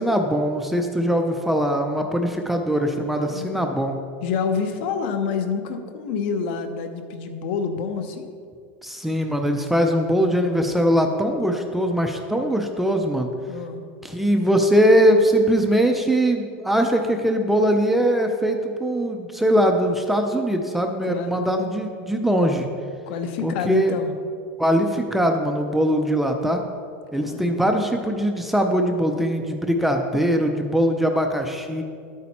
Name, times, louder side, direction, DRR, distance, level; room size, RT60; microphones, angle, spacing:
voice 1, 0.0-4.0 8.8-13.3 14.0-22.7 23.4-23.9 24.6-26.6 27.1-31.8, equal, ahead, 3 dB, 0.4 m, -21 dB
voice 2, 3.0-3.5 4.2-8.3 13.5-13.9 21.0-21.6 23.1-24.1 27.2-27.7, left 6 dB, 60° left, 8 dB, 0.9 m, -28 dB
11.0 x 8.5 x 4.2 m, 2.2 s
supercardioid pair, 170°, 7 cm